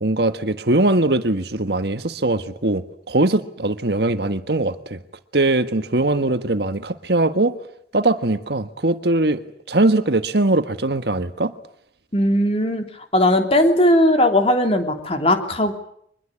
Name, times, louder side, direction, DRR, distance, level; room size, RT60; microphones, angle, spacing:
voice 1, 0.0-5.0 5.3-7.6 7.9-9.4 9.7-11.5, right 2 dB, 60° right, 9 dB, 1.5 m, -21 dB
voice 2, 12.1-12.9 13.1-15.7, left 1 dB, 30° left, 5 dB, 3.2 m, -18 dB
24.0 x 22.0 x 9.8 m, 0.70 s
head